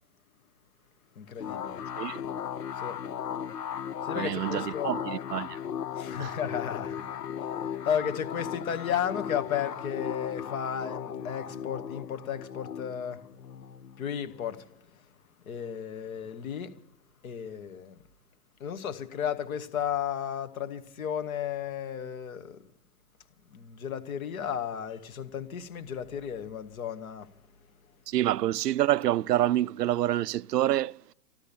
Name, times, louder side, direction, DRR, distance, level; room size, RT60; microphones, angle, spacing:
voice 1, 1.2-1.9 2.8-3.0 4.0-4.9 5.9-7.1 7.6-13.2 14.0-14.6 15.5-16.8 17.2-18.0 18.6-22.6 23.5-27.3, left 8 dB, 60° left, 1.7 m, -34 dB
sound 1, 1.4-14.6, left 8 dB, 80° left, 0.9 m, -37 dB
voice 2, 4.1-5.6 6.2-6.3 28.1-31.0, right 13 dB, 80° right, 0.5 m, -27 dB
14.0 x 13.0 x 7.1 m
hypercardioid pair, 135°, 47 cm